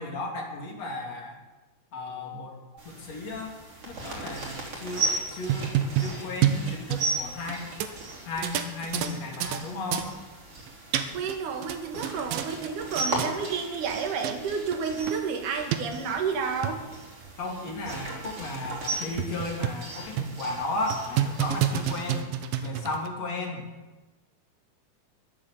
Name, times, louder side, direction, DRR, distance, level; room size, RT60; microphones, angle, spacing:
voice 1, 0.0-1.4 1.9-2.6 2.8-3.5 3.9-7.7 8.2-10.1 17.4-22.3 22.6-23.7, left 2 dB, 45° left, 0 dB, 3.3 m, -34 dB
sound 1, 2.8-22.2, right 2 dB, 35° right, 4.2 m, -37 dB
sound 2, 5.3-7.5 7.8-7.9 8.4-9.6 9.9-10.1 10.7-11.4 11.6-12.7 13.0-13.3 14.0-14.1 14.2-14.4 14.7-14.8 15.1-15.2 15.7-15.8 16.4-16.7 17.2-17.3 17.7-17.8 18.3-18.4 18.7-18.8 19.2-19.9 20.2-20.4 20.9-23.1, right 10 dB, 75° right, 2.3 m, -28 dB
voice 2, 11.1-16.8, right 6 dB, 55° right, 3 dB, 3.0 m, -30 dB
22.0 x 7.8 x 7.3 m, 1.1 s
omnidirectional pair, 4.9 m